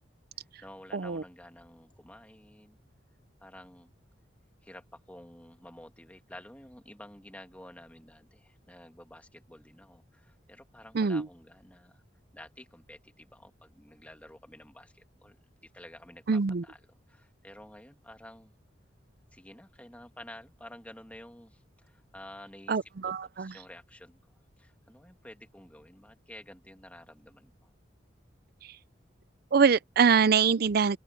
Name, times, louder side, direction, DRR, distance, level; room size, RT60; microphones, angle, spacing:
voice 1, 0.3-2.8 3.4-3.9 4.6-12.0 12.3-16.8 17.1-18.5 19.3-22.8 23.3-24.2 24.6-27.7, left 1 dB, 10° left, 2.1 m, -51 dB
voice 2, 0.9-1.2 10.9-11.3 16.3-16.6 22.7-23.5 29.5-31.0, right 6 dB, 55° right, 0.5 m, -24 dB
head